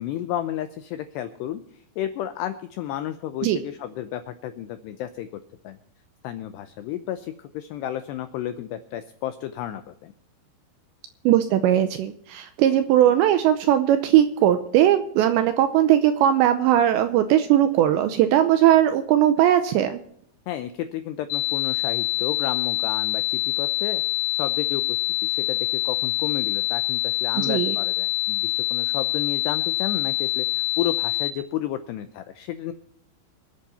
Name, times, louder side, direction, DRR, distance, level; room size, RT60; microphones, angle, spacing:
voice 1, 0.0-5.8 6.2-10.1 20.5-24.0 24.3-32.7, left 11 dB, 85° left, 10 dB, 2.4 m, -32 dB
voice 2, 11.3-20.0 27.4-27.8, right 11 dB, 85° right, 10 dB, 2.6 m, -19 dB
sound 1, 21.3-31.3, left 18 dB, 45° left, 3.7 m, -25 dB
25.5 x 8.5 x 4.2 m, 0.71 s
omnidirectional pair, 5.8 m